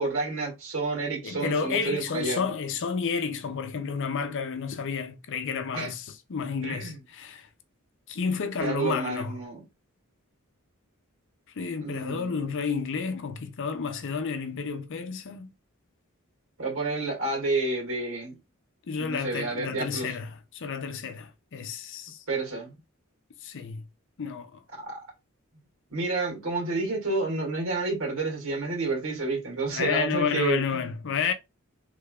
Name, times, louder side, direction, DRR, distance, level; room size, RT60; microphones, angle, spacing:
voice 1, 0.0-2.4 5.7-5.9 6.6-7.0 8.6-9.6 11.8-12.4 16.6-18.4 19.0-20.2 22.3-22.8 24.9-25.0 25.9-30.9, right 3 dB, 70° right, 2.0 m, -30 dB
voice 2, 1.2-6.0 6.3-7.5 8.1-9.4 11.6-15.5 18.9-22.2 23.4-23.8 24.2-24.6 29.7-31.3, left 5 dB, 60° left, 0.5 m, -31 dB
3.3 x 3.3 x 2.3 m
head